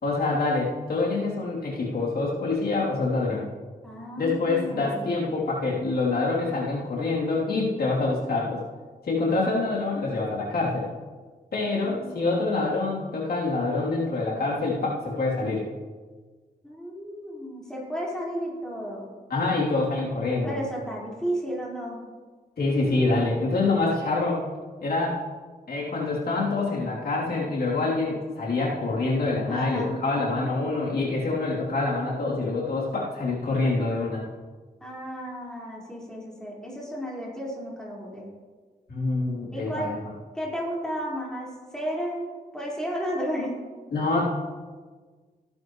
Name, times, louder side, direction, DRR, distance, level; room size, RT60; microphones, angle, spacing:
voice 1, 0.0-3.5 4.2-8.6 9.0-10.9 11.5-15.6 19.3-20.6 22.6-24.4 24.8-25.2 25.7-34.2 38.9-40.0 43.9-44.2, left 3 dB, 70° left, -5 dB, 3.3 m, -26 dB
voice 2, 3.8-5.1 11.6-12.4 16.6-19.1 20.4-22.0 29.5-30.0 34.8-38.3 39.5-39.9 40.3-43.6, equal, 5° left, -5 dB, 4.7 m, -33 dB
18.0 x 11.5 x 3.2 m, 1.4 s
cardioid pair, 90°, 16 cm